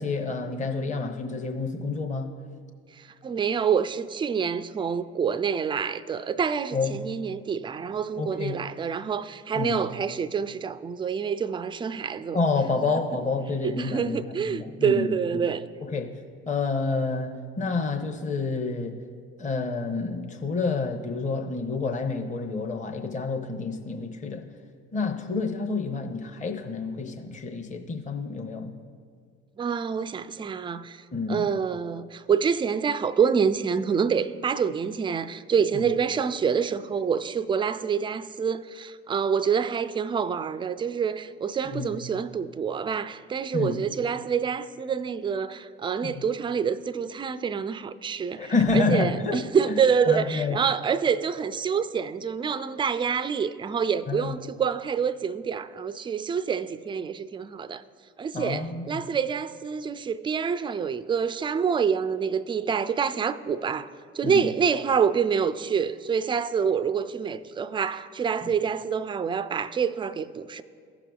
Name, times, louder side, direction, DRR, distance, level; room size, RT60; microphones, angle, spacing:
voice 1, 0.0-2.3 6.7-7.0 8.2-8.6 9.5-9.8 12.3-14.2 14.5-15.5 15.8-16.1 16.5-19.0 19.4-24.4 24.9-28.8 31.1-31.5 35.7-35.9 41.7-41.9 43.5-43.8 46.0-46.2 48.4-49.4 49.7-50.6 54.1-54.4 58.3-59.0 64.2-64.5 68.4-68.5, left 4 dB, 25° left, 0.8 m, -29 dB
voice 2, 3.0-12.4 13.6-15.6 29.6-31.0 31.3-57.8 58.2-63.9 64.1-70.6, right 6 dB, 15° right, 0.3 m, -27 dB
16.0 x 5.9 x 2.3 m
hypercardioid pair, 55°, 31 cm